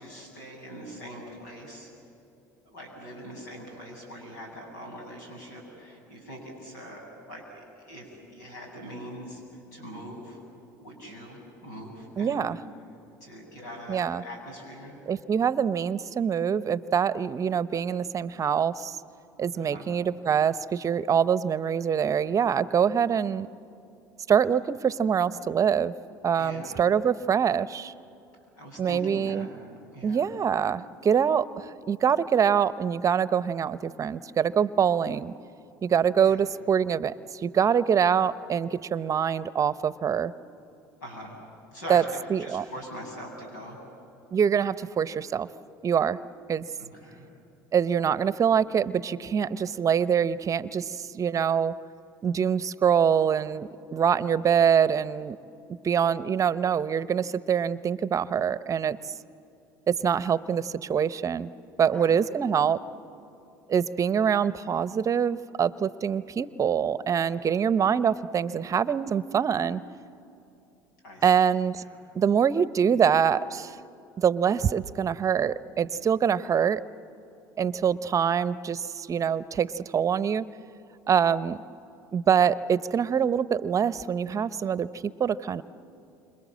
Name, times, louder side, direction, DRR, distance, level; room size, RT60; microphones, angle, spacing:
voice 1, 0.0-1.9 2.6-9.4 9.7-10.4 10.7-12.5 13.2-15.0 19.5-19.9 26.4-26.8 28.6-29.5 29.9-30.3 36.3-36.4 41.0-41.4 41.7-43.8 46.8-47.3 61.8-62.2 71.0-71.3 71.8-72.0, equal, 90° left, 1 dB, 7.5 m, -42 dB
voice 2, 12.2-12.6 13.9-14.2 15.1-19.0 19.4-23.5 24.3-25.9 26.2-27.9 28.8-29.5 30.0-35.3 35.8-40.3 41.9-42.0 42.3-42.6 44.3-45.5 45.8-46.2 46.5-46.7 47.7-51.7 52.2-55.4 55.8-59.0 59.9-61.5 61.8-62.8 63.7-69.8 71.2-71.8 72.1-73.8 74.2-76.8 77.6-80.4 81.1-81.6 82.1-84.9 85.2-85.6, right 7 dB, 35° right, 16 dB, 0.8 m, -24 dB
29.0 x 26.5 x 7.5 m, 2.8 s
hypercardioid pair, 75°, 9 cm